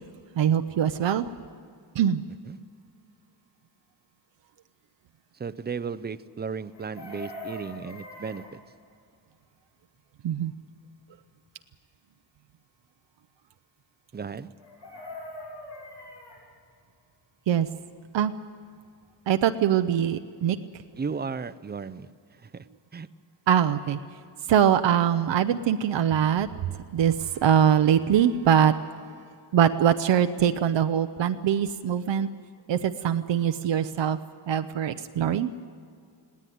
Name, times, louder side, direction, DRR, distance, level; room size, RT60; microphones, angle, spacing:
voice 1, 0.4-1.3 2.0-2.2 10.2-10.5 17.5-17.7 18.1-18.3 19.3-20.6 23.5-24.0 24.5-26.5 26.9-28.7 29.5-32.3 32.7-34.2 34.5-35.5, right 9 dB, 85° right, 8 dB, 0.7 m, -22 dB
voice 2, 5.4-8.6 14.1-14.5 21.0-22.1 22.4-22.7 22.9-23.1, right 5 dB, 25° right, 15 dB, 0.5 m, -35 dB
Chicken rooster, 6.7-8.5 14.6-16.4 18.6-18.7 19.0-19.3, left 1 dB, 90° left, 7.7 m, -42 dB
20.0 x 17.5 x 9.3 m, 2.3 s
wide cardioid pair, 160°, 43 cm